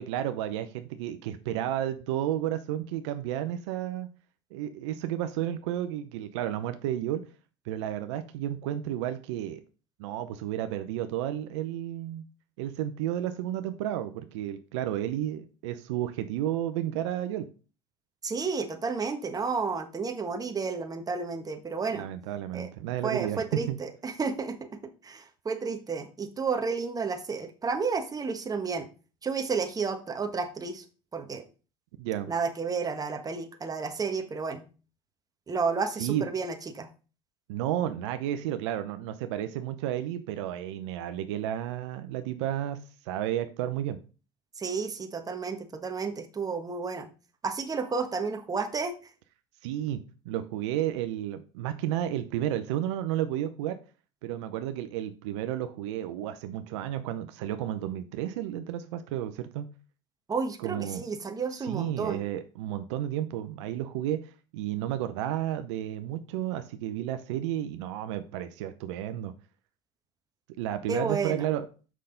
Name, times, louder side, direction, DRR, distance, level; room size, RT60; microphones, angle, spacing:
voice 1, 0.0-4.1 4.5-7.2 7.7-9.6 10.0-12.2 12.6-17.5 21.9-23.8 32.0-32.3 36.0-36.2 37.5-42.8 43.1-44.0 49.6-50.0 50.2-53.8 54.2-59.7 60.6-61.0 61.6-69.3 70.6-71.6, right 12 dB, 80° right, 9 dB, 0.7 m, -32 dB
voice 2, 18.2-22.1 22.5-22.7 23.0-24.7 25.0-28.9 29.2-30.8 31.1-31.4 32.3-34.7 35.5-36.9 44.6-47.1 47.4-48.9 60.3-62.3 70.9-71.5, right 5 dB, 25° right, 6 dB, 1.3 m, -31 dB
6.4 x 5.7 x 3.9 m, 0.36 s
supercardioid pair, 90°, 15 cm